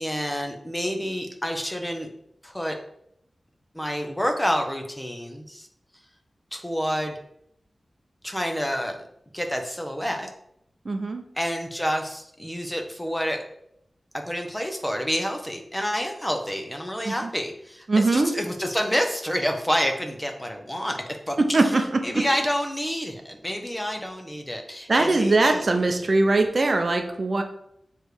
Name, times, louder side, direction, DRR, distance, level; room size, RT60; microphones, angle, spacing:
voice 1, 0.0-2.1 2.4-2.8 3.7-5.7 6.5-7.2 8.2-9.1 9.3-10.3 11.3-13.4 14.1-21.0 21.3-21.4 22.0-25.6, equal, 10° left, 3 dB, 1.0 m, -28 dB
voice 2, 10.8-11.2 17.0-17.3 17.9-18.3 21.4-22.3 24.9-27.4, right 2 dB, 50° right, 5 dB, 0.7 m, -21 dB
7.3 x 3.4 x 4.8 m, 0.74 s
wide cardioid pair, 80°, 0 cm